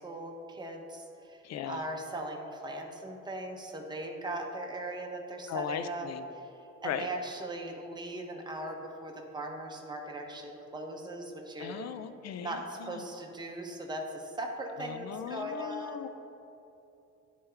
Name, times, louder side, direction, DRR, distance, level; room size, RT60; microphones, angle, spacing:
voice 1, 0.0-6.5 6.8-11.8 12.4-16.1, right 1 dB, 15° right, 1 dB, 0.8 m, -39 dB
voice 2, 1.4-1.8 5.5-6.3 6.8-7.1 11.6-13.1 14.8-16.1, left 8 dB, 60° left, 11 dB, 0.5 m, -38 dB
10.0 x 3.4 x 3.4 m, 2.8 s
cardioid pair, 90°, 30 cm